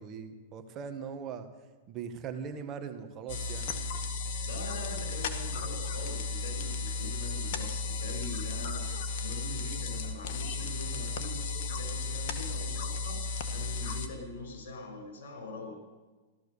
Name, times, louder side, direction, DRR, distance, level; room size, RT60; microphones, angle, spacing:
voice 1, 0.0-1.5 1.9-3.7, right 6 dB, 35° right, 8 dB, 1.6 m, -40 dB
sound 1, 3.3-14.1, left 4 dB, 55° left, 1.8 m, -34 dB
voice 2, 4.4-15.7, left 2 dB, 75° left, 3 dB, 6.3 m, -43 dB
15.5 x 13.0 x 6.9 m, 1.3 s
hypercardioid pair, 135°, 0 cm